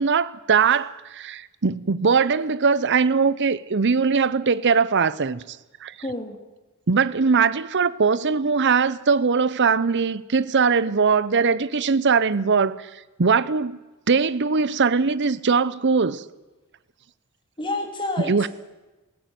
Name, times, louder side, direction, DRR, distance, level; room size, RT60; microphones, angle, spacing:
voice 1, 0.0-5.4 5.8-5.9 6.9-12.9 13.2-13.8 14.1-16.2 18.3-18.5, right 5 dB, 55° right, 0.7 m, -21 dB
voice 2, 6.0-6.4 17.6-18.5, left 2 dB, 25° left, 3.4 m, -29 dB
19.0 x 16.0 x 9.3 m
head